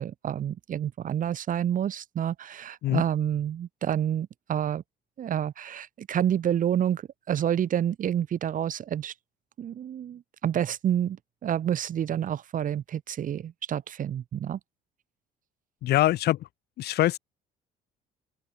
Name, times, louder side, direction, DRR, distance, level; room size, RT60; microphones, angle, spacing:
voice 1, 0.0-4.8 5.2-9.1 9.6-14.6, right 10 dB, 50° right, 2.8 m, -29 dB
voice 2, 15.8-16.4 16.8-17.2, left 14 dB, 75° left, 7.3 m, -23 dB
open air
cardioid pair, 110°, 17 cm